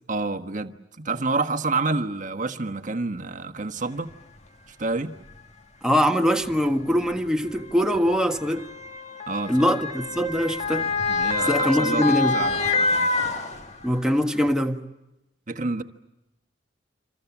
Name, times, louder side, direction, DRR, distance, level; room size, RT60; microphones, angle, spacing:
voice 1, 0.1-4.1 4.8-5.2 9.3-9.7 11.1-12.0 12.3-13.3 15.5-15.8, right 3 dB, 45° right, 1.3 m, -28 dB
Motor vehicle (road) / Siren, 4.1-4.2 5.2-5.4 6.4-14.0 14.5-14.6, left 3 dB, 40° left, 1.8 m, -27 dB
voice 2, 5.8-8.7 9.5-10.9 11.5-12.4 13.8-14.8, equal, 5° right, 1.5 m, -22 dB
27.5 x 26.5 x 7.2 m
head